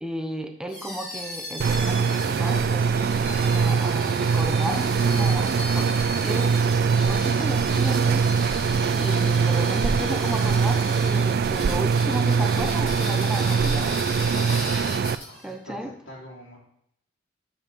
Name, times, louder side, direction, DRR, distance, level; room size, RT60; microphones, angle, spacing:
voice 1, 0.0-5.9 6.2-6.6 7.1-8.3 9.0-14.0 15.4-15.9, equal, 5° right, 4 dB, 0.7 m, -34 dB
sound 1, 0.7-15.5, left 1 dB, 45° left, 3.3 m, -37 dB
sound 2, 1.6-15.2, right 5 dB, 55° right, 0.3 m, -22 dB
voice 2, 15.1-16.6, equal, 85° left, -5 dB, 3.4 m, -43 dB
12.0 x 5.6 x 3.5 m, 0.74 s
head